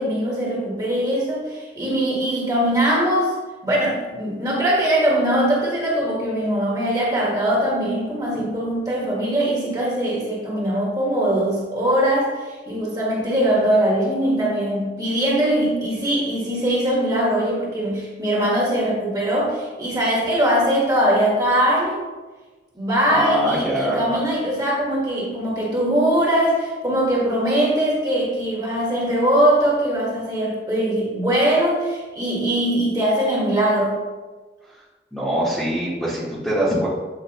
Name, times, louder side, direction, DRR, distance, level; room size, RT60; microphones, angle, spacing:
voice 1, 0.0-3.3 3.6-22.0 22.7-34.0, right 1 dB, 20° right, -4 dB, 1.4 m, -21 dB
voice 2, 23.1-24.2 35.1-36.9, right 1 dB, ahead, -9 dB, 1.2 m, -23 dB
8.1 x 4.5 x 2.9 m, 1.3 s
head